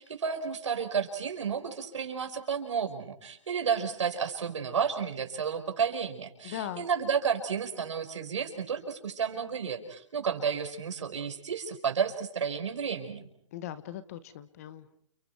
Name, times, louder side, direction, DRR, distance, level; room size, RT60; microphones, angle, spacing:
voice 1, 0.0-13.2, right 6 dB, 70° right, 5 dB, 5.1 m, -31 dB
voice 2, 6.4-6.9 13.5-15.1, left 11 dB, 30° left, 14 dB, 1.1 m, -39 dB
30.0 x 29.5 x 4.7 m, 0.66 s
hypercardioid pair, 165°, 16 cm